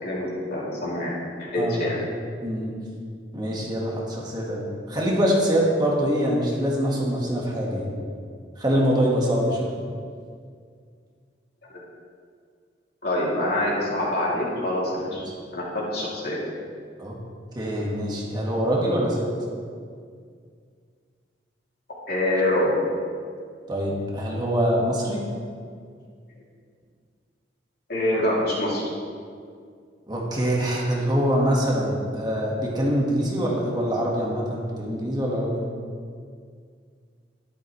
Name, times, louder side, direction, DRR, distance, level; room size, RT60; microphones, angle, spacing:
voice 1, 0.0-2.0 11.7-11.8 13.0-15.2 15.5-16.4 22.1-22.7 27.9-28.8, left 1 dB, 60° left, -6 dB, 2.9 m, -25 dB
voice 2, 2.4-2.7 3.3-7.9 8.6-9.7 17.0-17.2 17.6-19.3 23.7-25.2 30.1-35.6, equal, 25° right, -3 dB, 1.7 m, -24 dB
12.0 x 11.0 x 3.3 m, 2.1 s
head